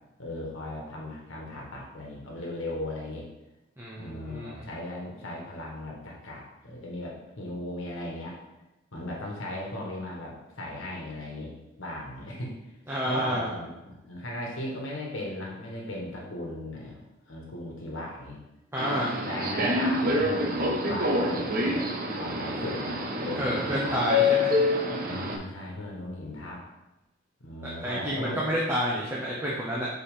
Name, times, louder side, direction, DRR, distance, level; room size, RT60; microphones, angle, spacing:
voice 1, 0.2-3.3 4.0-8.4 8.9-11.5 11.8-12.5 13.0-17.0 17.3-18.4 19.2-21.9 22.2-24.0 25.0-26.6 27.4-28.4, left 1 dB, 70° left, -2 dB, 1.4 m, -37 dB
voice 2, 3.8-4.6 12.9-13.5 18.7-19.1 23.4-24.5 27.6-29.9, equal, 10° right, -7 dB, 0.8 m, -29 dB
Subway metro underground, 18.8-25.4, left 2 dB, 40° right, 0.7 m, -27 dB
5.3 x 4.5 x 5.1 m, 0.97 s
head